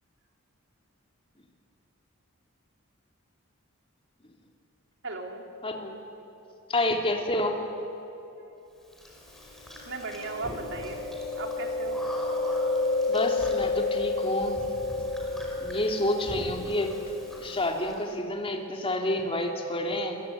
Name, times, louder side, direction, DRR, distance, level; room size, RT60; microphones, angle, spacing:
voice 1, 5.0-5.4 9.9-11.0 11.4-12.0, right 3 dB, 60° right, 2 dB, 3.5 m, -36 dB
voice 2, 5.6-6.0 6.7-7.6 13.1-14.6 15.6-16.9 17.4-20.2, left 1 dB, 25° left, 1 dB, 3.2 m, -29 dB
Chewing mastication, 9.0-17.9, left 3 dB, ahead, 5.5 m, -31 dB
28.0 x 21.5 x 9.6 m, 2.9 s
head